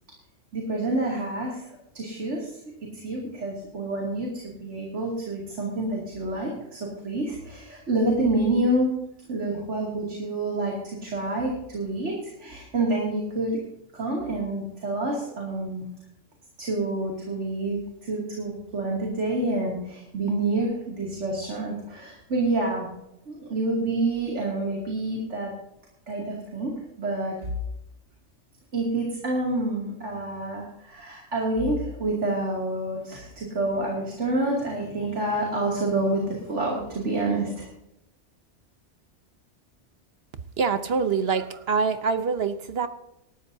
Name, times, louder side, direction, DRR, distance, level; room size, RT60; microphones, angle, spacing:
voice 1, 0.5-1.6 1.9-2.6 2.9-8.9 9.3-13.6 13.9-15.9 16.6-22.9 23.3-25.5 26.1-27.4 28.7-37.7, right 2 dB, 75° right, -2 dB, 2.9 m, -28 dB
voice 2, 40.6-42.9, right 5 dB, 60° right, 10 dB, 1.0 m, -25 dB
19.0 x 13.0 x 2.7 m, 0.83 s
omnidirectional pair, 1.2 m